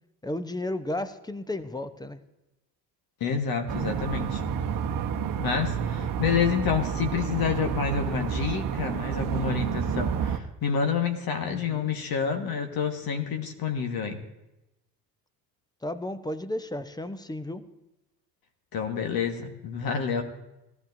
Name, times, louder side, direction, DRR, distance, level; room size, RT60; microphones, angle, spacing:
voice 1, 0.2-2.2 11.4-11.9 15.8-17.6, left 1 dB, 10° left, 12 dB, 0.8 m, -33 dB
voice 2, 3.2-4.4 5.4-14.2 18.7-20.2, left 6 dB, 45° left, 4 dB, 1.6 m, -28 dB
sound 1, 3.7-10.4, right 8 dB, 40° right, 1.0 m, -29 dB
18.5 x 13.0 x 2.7 m, 0.96 s
figure-of-eight pair, 55°, 48 cm